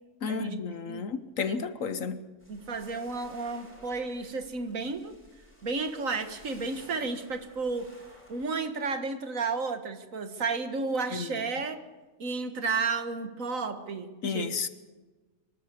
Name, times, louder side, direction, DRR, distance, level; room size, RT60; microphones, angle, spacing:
voice 1, 0.2-2.2 11.1-11.3 14.2-14.7, left 5 dB, 60° left, 1.3 m, -32 dB
sound 1, 2.4-8.5, equal, 5° left, 5.7 m, -55 dB
voice 2, 2.5-5.1 5.6-7.9 8.3-11.8 12.2-14.5, right 4 dB, 55° right, 1.8 m, -32 dB
24.5 x 12.5 x 8.4 m
omnidirectional pair, 1.7 m